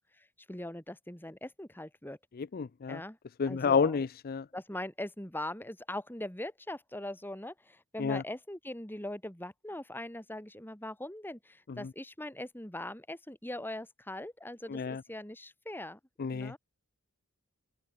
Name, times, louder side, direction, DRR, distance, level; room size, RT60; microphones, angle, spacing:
voice 1, 0.0-2.2 2.9-3.2 3.5-4.0 4.5-14.8 15.1-16.0 16.3-16.6, left 1 dB, 10° left, 2.5 m, -41 dB
voice 2, 2.4-3.0 3.4-4.5 8.0-8.2 14.7-15.0 16.2-16.5, left 5 dB, 40° left, 0.4 m, -30 dB
open air
head